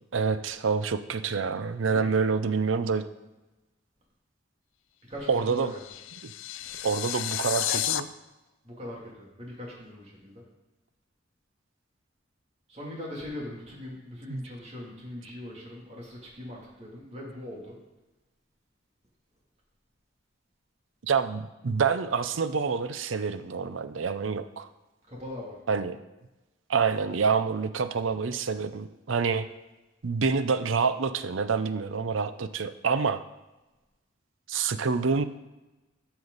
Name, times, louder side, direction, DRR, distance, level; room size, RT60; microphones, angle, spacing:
voice 1, 0.1-3.0 5.3-5.7 6.2-6.3 6.8-8.1 14.3-14.4 21.0-24.7 25.7-26.0 26.7-29.5 30.0-33.2 34.5-35.2, right 5 dB, 85° right, 12 dB, 0.6 m, -27 dB
voice 2, 5.1-5.8 8.6-9.0 9.4-10.4 12.7-17.8 25.1-25.6, left 1 dB, 35° right, -3 dB, 2.8 m, -40 dB
sound 1, 5.3-8.0, left 12 dB, 85° left, 0.4 m, -32 dB
12.5 x 7.0 x 4.1 m, 1.1 s
head